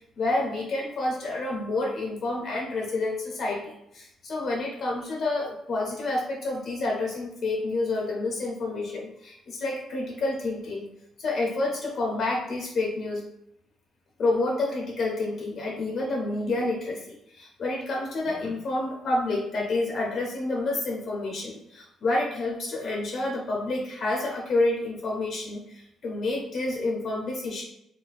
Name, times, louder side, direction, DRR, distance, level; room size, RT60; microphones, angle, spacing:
voice 1, 0.2-10.9 11.2-13.3 14.2-27.6, left 2 dB, 55° left, -1 dB, 0.6 m, -29 dB
2.5 x 2.2 x 3.9 m, 0.79 s
cardioid pair, 90°, 0 cm